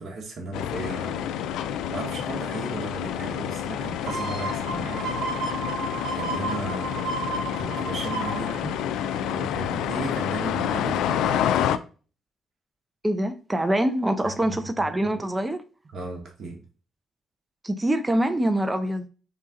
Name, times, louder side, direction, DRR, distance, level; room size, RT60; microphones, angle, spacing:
voice 1, 0.0-5.1 6.1-7.0 7.6-8.8 9.3-11.5 14.2-14.9 15.9-16.6, right 2 dB, 55° right, 1.3 m, -36 dB
sound 1, 0.5-11.8, left 10 dB, 85° left, 0.3 m, -28 dB
sound 2, 4.1-9.6 10.0-10.1, right 4 dB, 80° right, 0.6 m, -33 dB
voice 2, 13.0-15.6 17.6-19.1, right 1 dB, 15° right, 0.5 m, -24 dB
4.3 x 2.7 x 3.7 m
cardioid pair, 90°, 0 cm